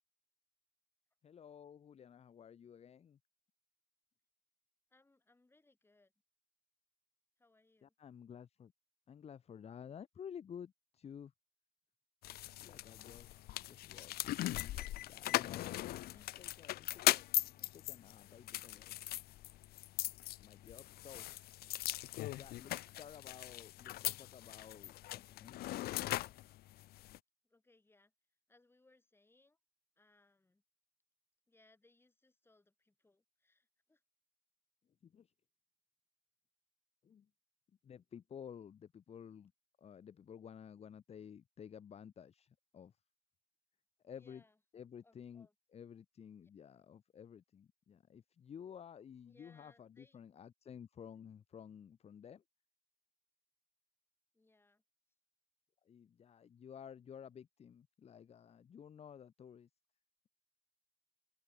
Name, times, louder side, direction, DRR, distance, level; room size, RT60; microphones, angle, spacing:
voice 1, 1.2-3.2 7.8-8.7 9.1-11.3 12.6-17.3 17.6-19.0 20.4-21.2 22.3-25.6 35.0-35.3 37.0-37.3 37.8-39.5 39.8-42.9 44.0-44.4 44.7-45.5 45.7-52.4 55.8-59.7, left 8 dB, 40° left, 1.0 m, -53 dB
voice 2, 4.9-6.1 7.4-7.9 16.0-16.3 21.1-21.4 27.4-28.1 28.5-29.6 30.0-30.6 31.5-34.0 44.0-44.6 45.0-45.5 49.3-50.2 54.3-54.8, left 2 dB, 15° left, 7.0 m, -70 dB
sound 1, 12.2-27.2, left 16 dB, 65° left, 0.6 m, -39 dB
open air
cardioid pair, 110°, 17 cm